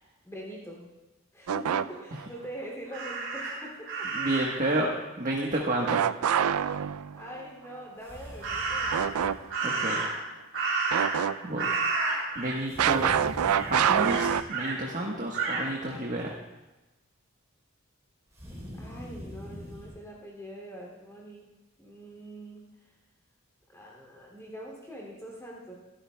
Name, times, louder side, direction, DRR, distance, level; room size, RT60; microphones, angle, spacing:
voice 1, 0.2-0.9 1.3-4.1 7.2-9.4 18.8-21.5 21.8-22.9 23.7-25.7, equal, 15° left, -3 dB, 2.7 m, -43 dB
sound 1, 1.5-2.2 5.9-7.4 8.9-9.4 9.7-9.8 10.9-11.7 12.8-14.4, right 8 dB, 90° right, 0.4 m, -26 dB
Crow, 2.9-4.7 8.4-9.2 9.5-11.3 11.6-12.6 12.9-13.1 13.5-14.8 15.3-15.7, right 4 dB, 60° right, 3.5 m, -31 dB
voice 2, 4.1-4.9 5.2-6.0 9.6-10.0 11.4-11.7 12.3-13.2 13.7-16.3, right 1 dB, 40° right, -1 dB, 1.3 m, -30 dB
sound 2, 8.0-9.5 12.7-14.5 18.3-19.9, equal, 15° right, 3.9 m, -43 dB
23.5 x 13.0 x 2.3 m, 1.1 s
head